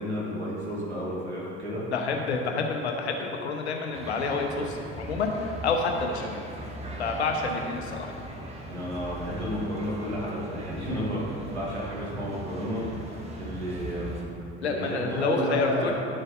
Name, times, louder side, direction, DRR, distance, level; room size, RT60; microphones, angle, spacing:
voice 1, 0.0-1.8 8.7-14.2 14.6-15.9, equal, 85° right, -6 dB, 1.8 m, -32 dB
voice 2, 1.9-6.4 7.0-8.1 14.6-15.9, left 4 dB, 80° left, 3 dB, 0.9 m, -28 dB
sound 1, 3.9-14.3, right 1 dB, 20° right, 1.3 m, -39 dB
11.0 x 6.6 x 2.5 m, 2.5 s
figure-of-eight pair, 60°, 33 cm